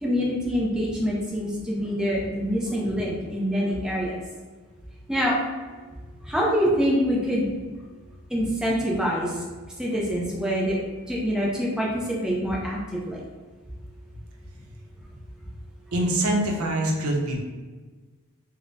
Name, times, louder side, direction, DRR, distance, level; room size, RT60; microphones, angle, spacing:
voice 1, 0.0-4.2 5.1-5.4 6.2-7.5 8.3-9.4 9.8-10.8 11.1-13.2, equal, 5° right, -4 dB, 0.5 m, -25 dB
voice 2, 15.9-17.4, right 1 dB, 75° right, 0 dB, 0.6 m, -24 dB
3.6 x 2.1 x 3.8 m, 1.4 s
head